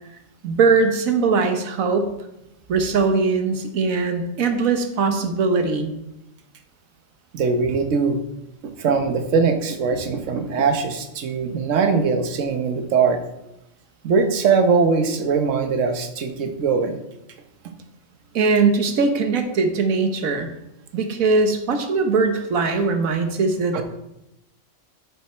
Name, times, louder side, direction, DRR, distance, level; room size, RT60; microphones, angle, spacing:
voice 1, 0.4-2.1 2.7-5.9 18.3-20.5 20.9-23.8, right 4 dB, 85° right, 7 dB, 1.4 m, -20 dB
voice 2, 7.3-8.2 8.8-13.2 14.0-17.0 23.7-23.8, right 5 dB, 70° right, 7 dB, 1.3 m, -21 dB
9.3 x 6.9 x 4.4 m, 0.88 s
omnidirectional pair, 1.4 m